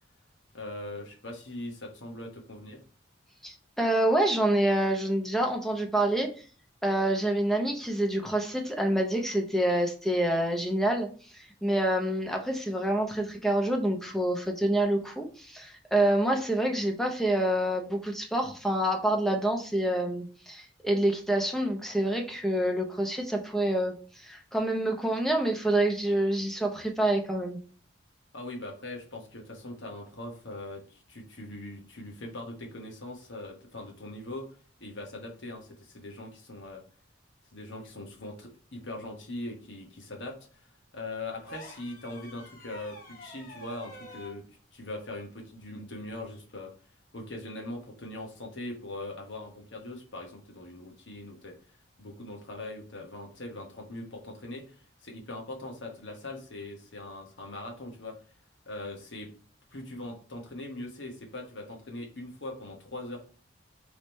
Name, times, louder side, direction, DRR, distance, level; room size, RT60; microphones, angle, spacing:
voice 1, 0.5-2.8 28.3-36.8 37.5-40.4 40.9-44.4 44.7-46.7 47.1-51.5 52.0-58.2 58.7-59.3 59.7-63.3, left 2 dB, 65° left, 1 dB, 1.1 m, -41 dB
voice 2, 3.4-6.3 6.8-11.1 11.3-23.9 24.2-27.6, right 1 dB, ahead, 3 dB, 0.6 m, -27 dB
sound 1, 41.4-44.4 46.1-46.2, right 1 dB, 45° left, 1.0 m, -47 dB
3.6 x 3.1 x 4.2 m, 0.40 s
head